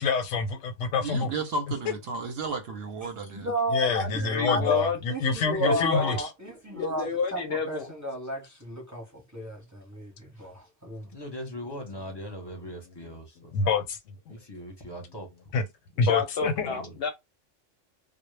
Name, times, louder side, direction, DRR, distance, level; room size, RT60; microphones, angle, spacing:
voice 1, 0.0-1.3 1.9-2.0 3.7-6.3 13.5-14.0 15.5-15.6 16.0-16.8, left 5 dB, 90° left, 1.0 m, -26 dB
voice 2, 1.0-3.5, right 3 dB, 65° right, 0.7 m, -33 dB
voice 3, 3.0-4.8 5.1-7.1 7.3-7.4 7.7-11.1, right 1 dB, 15° right, 0.7 m, -33 dB
voice 4, 4.1-5.0 5.6-6.2 6.7-7.9 16.0-17.1, left 5 dB, 60° left, 0.7 m, -30 dB
voice 5, 11.1-13.5 14.3-15.3 16.6-17.0, equal, 25° left, 0.6 m, -40 dB
2.0 x 2.0 x 3.1 m
omnidirectional pair, 1.3 m